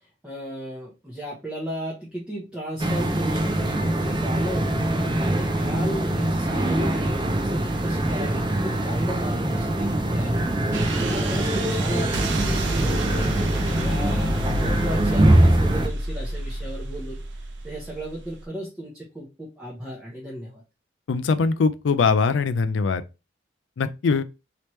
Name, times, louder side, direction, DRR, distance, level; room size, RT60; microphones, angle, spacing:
voice 1, 0.2-4.8 5.2-13.3 13.7-17.2 17.6-20.6, right 1 dB, 5° right, 0.9 m, -35 dB
sound 1, 2.8-15.9, right 1 dB, 25° right, 0.5 m, -23 dB
sound 2, 10.7-18.4, right 1 dB, 80° right, 0.6 m, -30 dB
voice 2, 21.1-23.0 23.8-24.2, left 4 dB, 80° left, 0.4 m, -22 dB
3.3 x 2.9 x 3.0 m
head